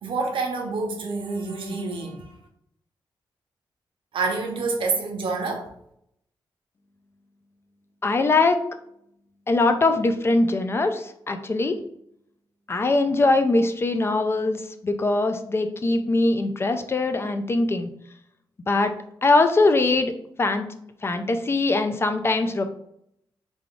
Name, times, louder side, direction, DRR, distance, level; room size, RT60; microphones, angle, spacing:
voice 1, 0.0-2.3 4.1-5.7, right 3 dB, 75° right, 2 dB, 0.8 m, -27 dB
voice 2, 8.0-8.7 9.5-11.8 12.7-17.9 18.7-18.9 19.2-20.1 20.4-20.6 21.0-22.6, left 2 dB, 30° left, 7 dB, 0.3 m, -22 dB
3.4 x 2.4 x 3.7 m, 0.72 s
wide cardioid pair, 140°, 9 cm